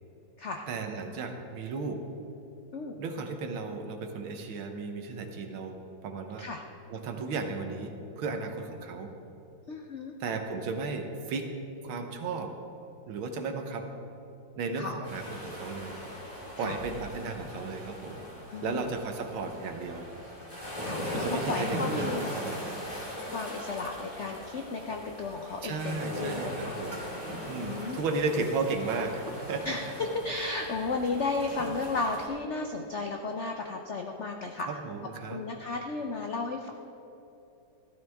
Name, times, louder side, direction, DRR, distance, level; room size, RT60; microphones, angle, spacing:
voice 1, 0.7-2.0 3.0-6.5 6.9-9.1 10.2-11.5 11.8-12.5 13.1-13.9 14.6-16.0 16.6-18.2 18.6-20.1 21.1-22.8 25.6-27.0 27.5-29.8 34.7-35.4, right 4 dB, 85° right, 5 dB, 1.8 m, -34 dB
voice 2, 9.7-10.1 14.8-15.1 16.6-16.8 18.5-18.9 20.8-22.3 23.2-26.8 27.6-28.0 29.6-34.7 35.3-36.7, left 3 dB, 85° left, 3 dB, 0.6 m, -34 dB
sound 1, 15.0-32.3, equal, 20° left, 2.6 m, -39 dB
14.0 x 13.0 x 3.5 m, 3.0 s
omnidirectional pair, 2.2 m